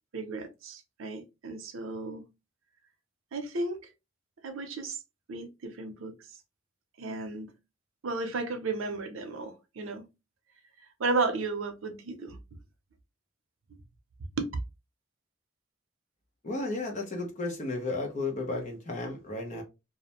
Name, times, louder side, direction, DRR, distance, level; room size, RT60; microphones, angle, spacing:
voice 1, 0.1-2.3 3.3-3.8 4.4-5.0 5.3-6.2 7.0-7.5 8.0-10.1 11.0-12.4 14.4-14.5, right 3 dB, 85° right, 0.6 m, -33 dB
voice 2, 16.4-19.6, left 2 dB, 40° left, 0.7 m, -33 dB
2.4 x 2.1 x 2.8 m
head